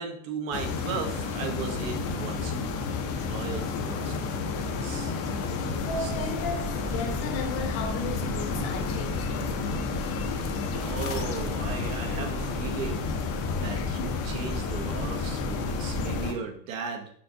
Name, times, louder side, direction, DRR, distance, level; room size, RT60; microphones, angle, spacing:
voice 1, 0.0-2.8 3.3-4.1 4.7-5.1 6.0-6.1 10.7-13.1 13.5-17.1, right 5 dB, 75° right, 3 dB, 1.0 m, -36 dB
sound 1, 0.5-16.3, left 4 dB, 40° left, 0.5 m, -31 dB
voice 2, 3.5-4.2 5.8-9.9 13.7-14.2 16.1-16.3, left 3 dB, 55° left, 5 dB, 1.0 m, -36 dB
sound 2, 5.7-16.3, right 1 dB, 15° right, 0.5 m, -38 dB
4.5 x 3.5 x 2.6 m, 0.63 s
supercardioid pair, 125°, 40 cm